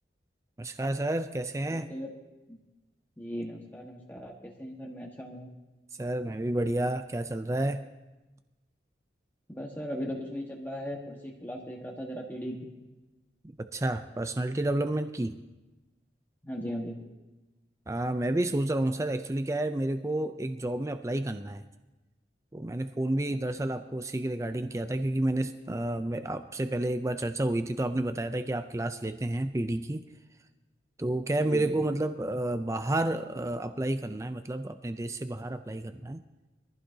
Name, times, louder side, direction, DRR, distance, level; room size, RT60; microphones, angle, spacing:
voice 1, 0.6-1.9 6.0-7.8 13.6-15.4 17.9-21.6 22.5-30.0 31.0-36.2, right 1 dB, 15° right, 9 dB, 0.4 m, -30 dB
voice 2, 1.7-2.1 2.5-2.6 3.2-5.5 9.5-12.7 16.4-17.0 31.5-31.8, equal, 10° left, -1 dB, 1.4 m, -38 dB
22.0 x 15.0 x 2.8 m, 1.1 s
head